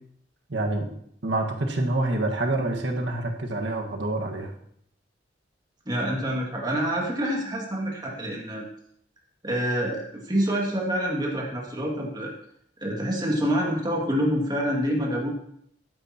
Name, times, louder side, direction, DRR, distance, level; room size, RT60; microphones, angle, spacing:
voice 1, 0.5-0.9 1.2-4.5, right 2 dB, 70° right, 2 dB, 1.7 m, -27 dB
voice 2, 5.9-8.7 9.4-12.4 12.8-15.3, equal, 25° right, -2 dB, 2.4 m, -27 dB
16.0 x 12.5 x 3.0 m, 0.69 s
head